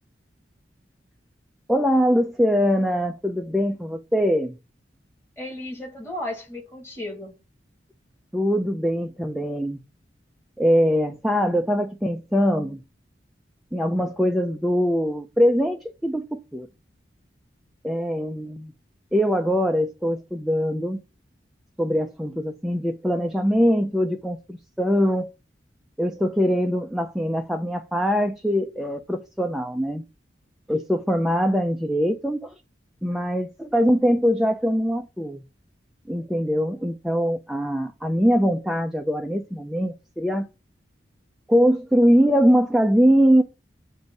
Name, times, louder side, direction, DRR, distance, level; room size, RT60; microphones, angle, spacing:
voice 1, 1.7-4.5 8.3-9.8 10.6-12.8 13.7-16.7 17.8-18.7 19.1-21.0 21.8-25.3 26.0-30.0 30.7-32.5 33.0-35.4 36.1-40.5 41.5-43.4, equal, ahead, 0.4 m, -22 dB
voice 2, 5.4-7.4, left 1 dB, 15° left, 2.1 m, -34 dB
7.8 x 2.7 x 5.2 m
head